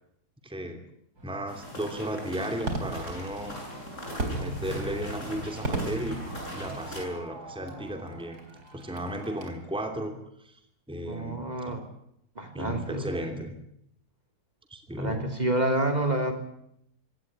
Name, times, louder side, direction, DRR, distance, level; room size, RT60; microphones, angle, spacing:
voice 1, 0.4-0.8 1.2-3.6 4.4-6.2 6.5-8.4 8.7-10.2 10.4-10.6 10.9-11.8 12.5-13.6 14.7-15.3, equal, 5° right, 6 dB, 2.9 m, -34 dB
Fireworks, 1.2-9.5, right 2 dB, 75° right, 4.5 m, -38 dB
sound 1, 1.5-7.0, equal, 50° left, 8.5 m, -41 dB
voice 2, 11.0-11.8 12.3-13.1 15.0-16.3, right 1 dB, 25° right, 6 dB, 3.4 m, -28 dB
24.5 x 18.0 x 10.0 m, 0.76 s
omnidirectional pair, 1.7 m